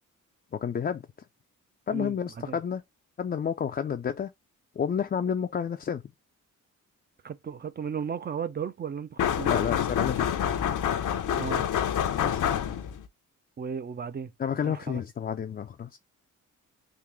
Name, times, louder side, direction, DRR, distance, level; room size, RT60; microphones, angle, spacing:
voice 1, 0.5-1.1 1.9-2.8 3.2-4.3 4.8-6.0 9.5-10.3 12.2-12.4 14.4-16.0, left 7 dB, 30° left, 0.4 m, -30 dB
voice 2, 1.9-2.6 7.2-9.5 11.3-11.7 13.6-14.3 14.6-15.0, right 7 dB, 30° right, 0.4 m, -35 dB
sound 1, 9.2-13.1, left 9 dB, 70° left, 0.6 m, -27 dB
3.7 x 2.5 x 3.0 m
cardioid pair, 80°, 32 cm